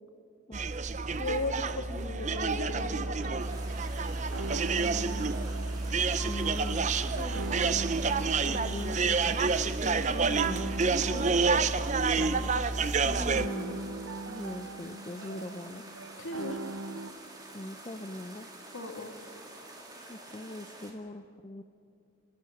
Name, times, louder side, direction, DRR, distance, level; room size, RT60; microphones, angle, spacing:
sound 1, 0.5-13.5, right 4 dB, 35° right, 0.5 m, -29 dB
voice 1, 1.2-3.4 7.1-7.6 11.1-11.5 16.2-16.6 18.7-19.1, left 2 dB, 85° left, 5 dB, 2.0 m, -37 dB
sound 2, 2.7-17.1, right 3 dB, 85° right, 0.8 m, -41 dB
sound 3, 3.4-20.9, right 2 dB, 20° right, 2.3 m, -48 dB
voice 2, 4.8-5.5 6.1-7.0 8.5-10.7 12.1-12.6 13.0-15.8 17.5-18.5 20.1-21.6, left 1 dB, 25° left, 10 dB, 0.5 m, -41 dB
29.0 x 11.5 x 9.1 m, 2.5 s
head